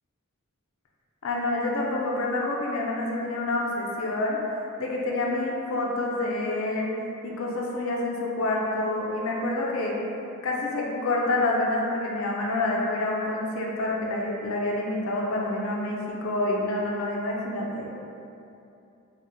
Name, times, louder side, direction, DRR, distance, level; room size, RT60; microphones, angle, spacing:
voice 1, 1.2-4.4 4.8-6.9 7.2-10.0 10.4-17.9, left 2 dB, 70° left, -2 dB, 0.4 m, -27 dB
2.7 x 2.0 x 3.5 m, 2.7 s
head